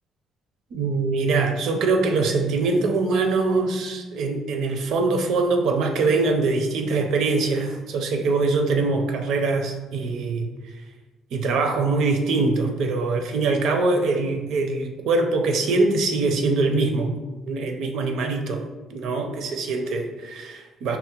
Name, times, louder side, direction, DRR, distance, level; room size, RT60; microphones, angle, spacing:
voice 1, 0.7-10.5 11.3-17.1 17.4-18.6 18.9-21.0, right 3 dB, 75° right, 4 dB, 0.5 m, -23 dB
5.4 x 2.1 x 2.9 m, 1.2 s
cardioid pair, 105°, 0 cm